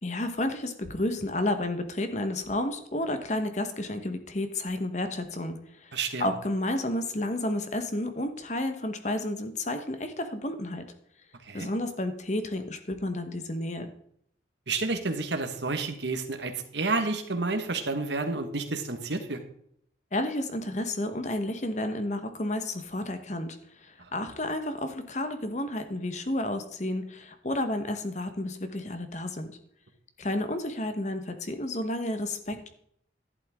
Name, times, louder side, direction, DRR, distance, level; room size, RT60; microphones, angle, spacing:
voice 1, 0.0-5.9 6.2-10.8 11.5-13.9 20.1-29.6 30.2-32.7, left 1 dB, 40° left, 8 dB, 1.2 m, -31 dB
voice 2, 5.9-6.3 11.4-11.7 14.7-19.4 24.0-24.1, right 3 dB, 70° right, 6 dB, 1.5 m, -30 dB
11.5 x 11.0 x 3.6 m, 0.69 s
head